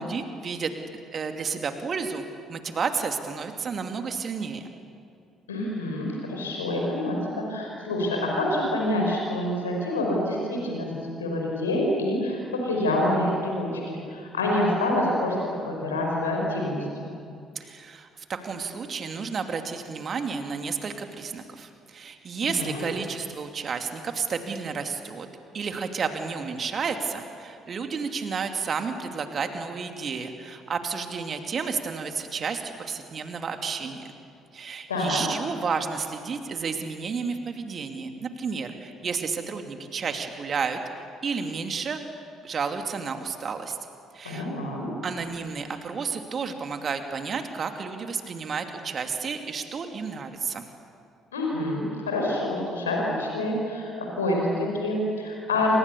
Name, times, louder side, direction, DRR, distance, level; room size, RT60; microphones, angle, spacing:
voice 1, 0.0-4.7 17.5-25.3 25.5-34.1 34.5-40.8 41.2-42.0 42.4-43.8 44.1-44.5 45.0-50.7, right 5 dB, 40° right, 6 dB, 2.7 m, -31 dB
voice 2, 5.5-15.4 15.6-17.1 22.4-22.8 34.9-35.2 44.2-44.9 51.3-55.8, left 1 dB, 80° left, -1 dB, 5.1 m, -27 dB
28.5 x 26.5 x 7.0 m, 2.4 s
figure-of-eight pair, 50°, 0 cm